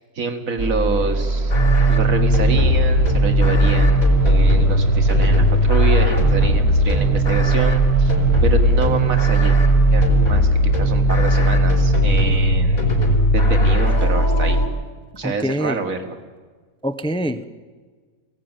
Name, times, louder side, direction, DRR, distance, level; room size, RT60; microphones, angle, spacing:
voice 1, 0.2-1.5 1.9-8.1 8.4-9.6 9.9-12.9 13.3-14.6 15.1-16.2, right 4 dB, 65° right, 7 dB, 2.3 m, -26 dB
sound 1, 0.6-13.7, right 1 dB, 45° right, 1.4 m, -24 dB
sound 2, 1.5-14.7, equal, 70° left, 4.4 m, -17 dB
voice 2, 15.2-15.8 16.8-17.4, equal, 5° left, 9 dB, 0.5 m, -24 dB
23.5 x 17.0 x 9.1 m, 1.5 s
omnidirectional pair, 1.5 m